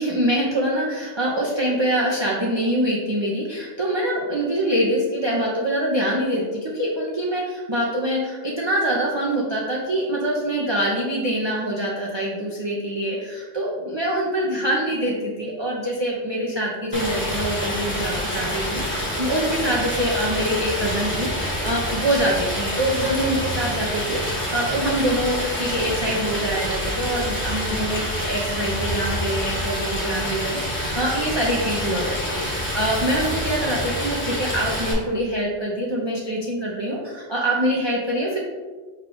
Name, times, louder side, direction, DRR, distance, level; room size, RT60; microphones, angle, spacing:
voice 1, 0.0-38.4, right 1 dB, 35° right, -5 dB, 0.4 m, -25 dB
Stream, 16.9-34.9, equal, 10° left, 0.9 m, -27 dB
5.5 x 2.3 x 3.7 m, 1.4 s
omnidirectional pair, 1.2 m